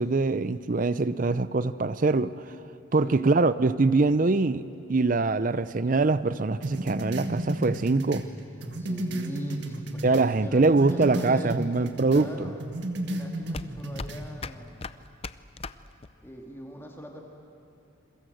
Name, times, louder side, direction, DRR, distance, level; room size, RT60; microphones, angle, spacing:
voice 1, 0.0-2.3 2.9-4.6 4.9-8.3 10.0-12.3, right 3 dB, 40° right, 14 dB, 0.5 m, -23 dB
voice 2, 2.9-3.4 8.7-11.6 12.1-12.6 13.0-14.9 16.2-17.2, equal, 10° left, 1 dB, 2.2 m, -42 dB
sound 1, 6.6-10.3 10.6-12.3 12.6-14.3, right 1 dB, 60° right, 1.8 m, -33 dB
sound 2, 10.5-16.4, left 4 dB, 30° left, 0.5 m, -41 dB
28.0 x 22.5 x 7.9 m, 2.8 s
head